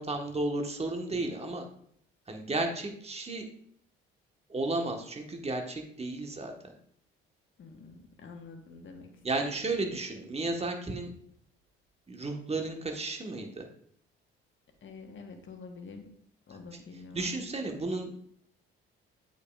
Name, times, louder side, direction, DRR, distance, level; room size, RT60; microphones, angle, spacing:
voice 1, 0.0-1.7 2.3-3.5 4.5-6.7 9.2-11.1 12.1-13.7 17.1-18.2, right 2 dB, 20° right, 4 dB, 1.3 m, -33 dB
voice 2, 7.6-9.2 14.8-16.1 16.5-17.3, left 4 dB, 40° left, 3 dB, 1.3 m, -47 dB
8.1 x 5.4 x 2.4 m, 0.64 s
hypercardioid pair, 55°, 29 cm